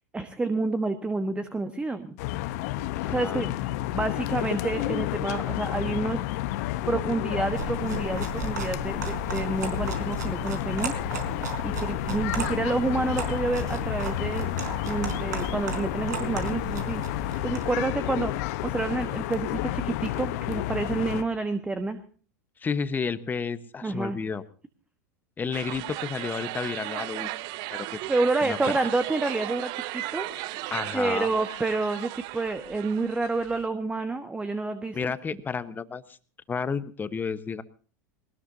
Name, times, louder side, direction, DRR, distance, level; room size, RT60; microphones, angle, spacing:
voice 1, 0.1-2.1 3.1-6.2 6.9-11.0 11.6-14.5 14.9-22.0 23.8-24.2 28.1-30.3 30.9-35.1, right 3 dB, 10° right, 9 dB, 1.3 m, -29 dB
sound 1, 2.2-21.2, left 15 dB, 60° left, 1.0 m, -31 dB
voice 2, 3.0-3.5 22.6-24.4 25.4-27.3 27.7-28.0 28.4-28.6 30.7-31.3 34.9-36.2 36.5-37.6, left 5 dB, 20° left, 13 dB, 1.1 m, -31 dB
sound 2, 7.4-17.7, right 5 dB, 80° right, 4.2 m, -35 dB
sound 3, 25.5-33.7, right 17 dB, 50° right, 0.8 m, -36 dB
21.0 x 19.0 x 2.8 m, 0.41 s
hypercardioid pair, 95°, 9 cm